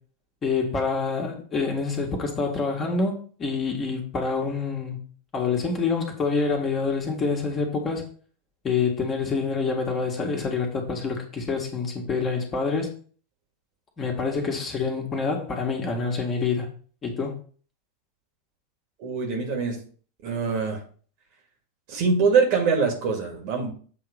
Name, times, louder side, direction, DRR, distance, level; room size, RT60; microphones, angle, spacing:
voice 1, 0.4-5.0 5.3-8.1 8.6-12.9 14.0-16.7 17.0-17.4, left 4 dB, 25° left, 2.0 m, -27 dB
voice 2, 19.0-19.8 20.2-20.8 21.9-23.7, right 5 dB, 45° right, 2.1 m, -23 dB
7.9 x 3.8 x 5.1 m
figure-of-eight pair, 90°, 0 cm